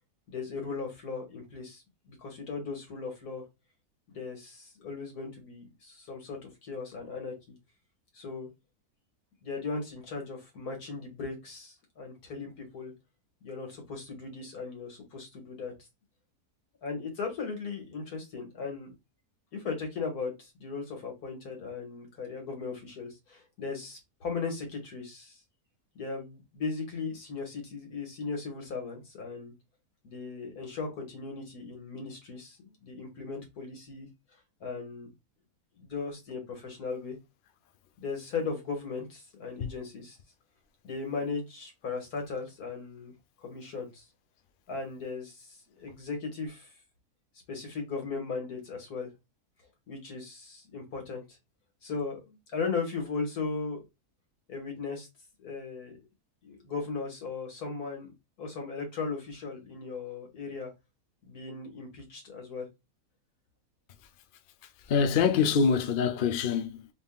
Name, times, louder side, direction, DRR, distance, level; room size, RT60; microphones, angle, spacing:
voice 1, 0.3-3.4 4.1-7.3 8.1-8.5 9.4-12.9 13.4-15.7 16.8-18.9 19.5-25.4 26.0-29.5 30.0-34.1 34.6-35.1 35.8-37.2 38.0-40.2 40.8-43.1 43.4-44.0 44.7-46.7 47.5-49.1 49.9-51.2 51.8-53.8 54.5-55.1 55.4-56.0 56.4-58.1 58.4-60.7 61.2-62.7, left 4 dB, 70° left, 2.1 m, -37 dB
voice 2, 64.9-66.9, left 6 dB, 90° left, 0.4 m, -25 dB
3.6 x 3.6 x 2.3 m
omnidirectional pair, 1.7 m